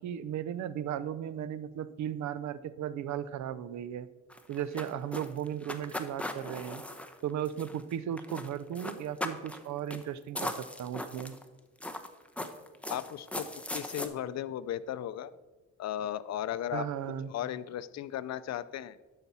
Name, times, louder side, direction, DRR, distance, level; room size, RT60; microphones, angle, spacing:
voice 1, 0.0-4.1 4.5-6.8 7.2-10.5 10.8-11.3 16.7-17.3, right 9 dB, 70° right, 16 dB, 0.6 m, -36 dB
sound 1, 4.3-7.9 8.2-8.5 8.8-9.6 9.9-10.0 10.3-11.4 11.8-14.1, left 1 dB, 5° left, 0.9 m, -38 dB
voice 2, 12.9-13.5 13.7-15.3 15.8-16.8 17.3-19.0, left 11 dB, 60° left, 16 dB, 0.5 m, -36 dB
12.0 x 5.8 x 4.2 m, 1.2 s
cardioid pair, 90°, 30 cm